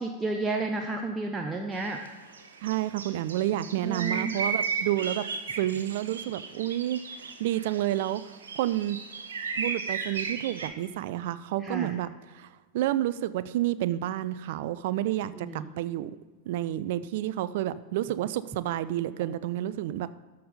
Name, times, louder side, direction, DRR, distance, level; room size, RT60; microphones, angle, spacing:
voice 1, 0.0-2.0 3.8-4.3 11.6-12.0 15.2-15.7, right 3 dB, 15° right, 2 dB, 0.6 m, -32 dB
sound 1, 1.8-2.1 2.3-10.7, right 5 dB, 65° right, 0.8 m, -35 dB
voice 2, 2.6-5.2 5.6-8.2 8.5-9.0 9.6-12.1 12.3-12.5 12.7-16.1 16.5-20.1, right 13 dB, 50° right, 15 dB, 0.4 m, -30 dB
13.0 x 5.4 x 4.0 m, 1.3 s
figure-of-eight pair, 90°, 0 cm